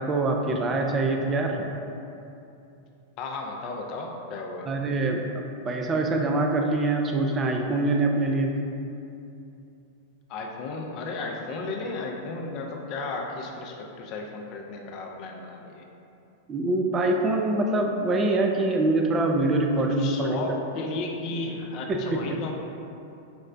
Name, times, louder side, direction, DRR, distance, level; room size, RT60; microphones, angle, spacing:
voice 1, 0.0-1.7 4.7-8.5 16.5-20.4 21.9-22.3, right 2 dB, 25° right, 2 dB, 0.3 m, -24 dB
voice 2, 3.2-4.7 10.3-15.9 19.7-22.5, left 3 dB, 45° left, 1 dB, 0.4 m, -34 dB
5.0 x 2.1 x 2.5 m, 2.7 s
hypercardioid pair, 95°, 0 cm